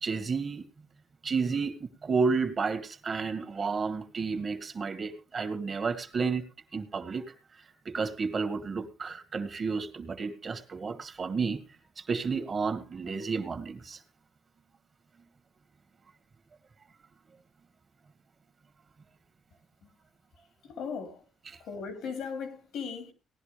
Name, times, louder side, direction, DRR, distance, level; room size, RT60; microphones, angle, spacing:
voice 1, 0.0-0.6 1.2-6.4 6.7-7.2 7.6-11.6 12.0-14.0 21.5-21.6, right 4 dB, 40° right, 2.1 m, -31 dB
voice 2, 20.6-21.2 21.6-23.1, left 6 dB, 80° left, 3.5 m, -37 dB
18.0 x 11.0 x 3.4 m
cardioid pair, 90°, 0 cm